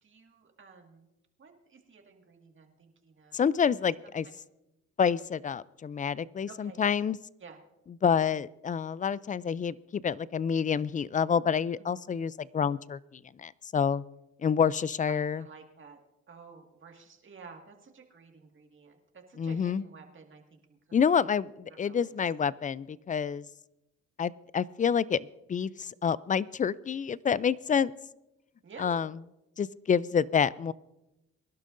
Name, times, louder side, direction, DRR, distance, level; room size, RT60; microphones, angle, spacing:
voice 1, 0.0-1.1 1.4-3.4 3.6-3.7 4.0-4.3 6.5-6.9 7.4-7.6 11.8-12.2 15.0-16.0 16.3-20.8 21.7-22.1 28.6-29.1, right 5 dB, 40° right, 3 dB, 1.9 m, -52 dB
voice 2, 3.3-4.2 5.0-7.2 8.0-13.0 13.4-14.0 14.4-15.4 19.4-19.8 20.9-23.5 24.2-27.9 28.8-29.1 29.6-30.7, left 7 dB, 25° left, 20 dB, 0.3 m, -28 dB
23.5 x 11.5 x 2.6 m, 0.95 s
cardioid pair, 90°, 30 cm